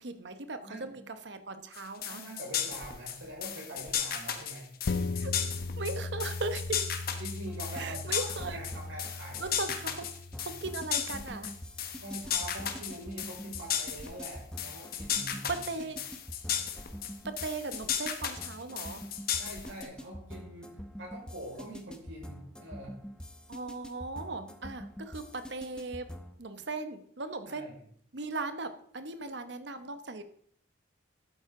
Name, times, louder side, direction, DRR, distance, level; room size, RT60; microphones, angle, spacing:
voice 1, 0.0-2.2 5.1-5.4 5.8-6.8 7.7-8.6 9.4-10.1 10.4-11.5 15.5-16.0 17.2-19.0 23.5-26.1 26.4-27.7 28.1-30.2, right 3 dB, 60° right, 10 dB, 0.9 m, -38 dB
voice 2, 0.6-1.1 2.1-4.7 7.2-9.5 12.0-15.9 19.3-22.9 27.5-27.8, right 1 dB, 80° right, -3 dB, 5.1 m, -44 dB
sound 1, 1.7-19.8, left 9 dB, 50° left, 1.2 m, -35 dB
sound 2, 4.8-13.7 14.1-14.2, left 3 dB, 70° left, 0.5 m, -39 dB
sound 3, 7.5-26.4, equal, 5° left, 0.7 m, -46 dB
12.0 x 9.2 x 3.8 m, 0.62 s
head